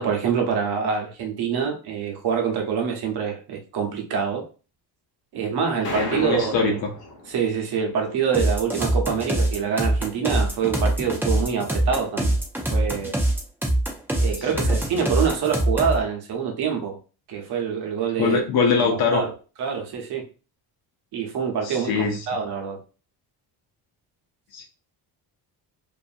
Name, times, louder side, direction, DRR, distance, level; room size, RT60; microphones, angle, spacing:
voice 1, 0.0-4.4 5.3-6.8 7.3-12.4 12.7-13.2 14.2-17.0 17.3-18.4 18.8-19.3 19.6-20.2 21.1-22.8, right 6 dB, 65° right, 0.9 m, -25 dB
sound 1, 5.8-7.8, left 1 dB, 30° left, 0.8 m, -35 dB
voice 2, 5.9-6.9 14.5-14.8 18.2-19.2 21.6-22.2 24.5-24.6, left 5 dB, 65° left, 0.7 m, -23 dB
sound 2, 8.3-16.0, right 1 dB, 5° right, 0.4 m, -23 dB
2.6 x 2.5 x 2.5 m
cardioid pair, 175°, 41 cm